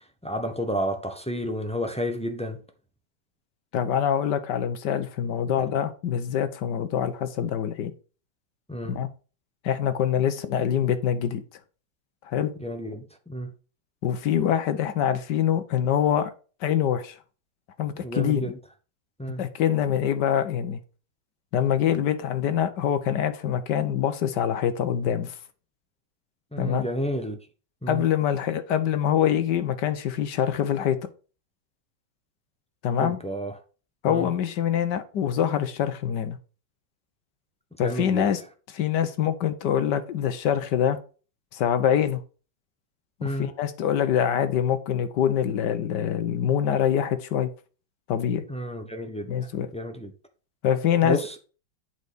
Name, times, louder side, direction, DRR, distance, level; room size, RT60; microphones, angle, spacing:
voice 1, 0.2-2.6 8.7-8.9 12.6-13.5 17.9-18.6 19.2-19.4 26.5-27.4 27.8-28.0 33.0-33.5 34.1-34.3 37.8-38.3 43.2-43.5 48.5-49.3 49.7-50.1 51.0-51.4, equal, 10° left, 0.4 m, -31 dB
voice 2, 3.7-7.9 8.9-9.1 9.6-11.4 12.2-12.5 14.0-16.3 16.6-17.2 17.8-18.5 19.4-20.8 21.5-25.4 26.6-26.9 27.9-31.0 32.8-33.2 34.0-36.4 37.8-38.4 38.7-41.0 41.5-42.2 43.2-47.5 48.1-48.4 49.2-49.7 50.6-51.2, left 9 dB, 65° left, 1.5 m, -25 dB
8.1 x 4.2 x 5.1 m
omnidirectional pair, 2.1 m